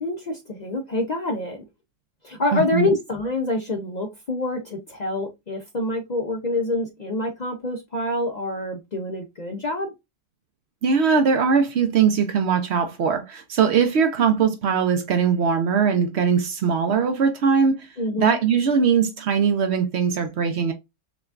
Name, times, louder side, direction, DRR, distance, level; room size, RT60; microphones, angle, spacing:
voice 1, 0.0-1.6 2.2-9.9 18.0-18.4, left 2 dB, 65° left, 0.4 m, -26 dB
voice 2, 2.5-2.9 10.8-17.9 18.2-20.7, right 6 dB, 65° right, 0.7 m, -20 dB
5.8 x 2.3 x 2.4 m
omnidirectional pair, 1.6 m